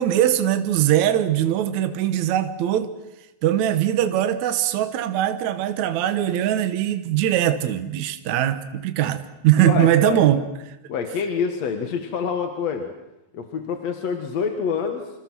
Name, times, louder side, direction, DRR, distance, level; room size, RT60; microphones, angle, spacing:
voice 1, 0.0-2.9 3.4-10.8, right 11 dB, 65° right, 2.3 m, -21 dB
voice 2, 9.6-10.2 10.9-12.9 13.3-15.1, left 6 dB, 55° left, 2.5 m, -26 dB
27.0 x 26.5 x 6.2 m
omnidirectional pair, 3.9 m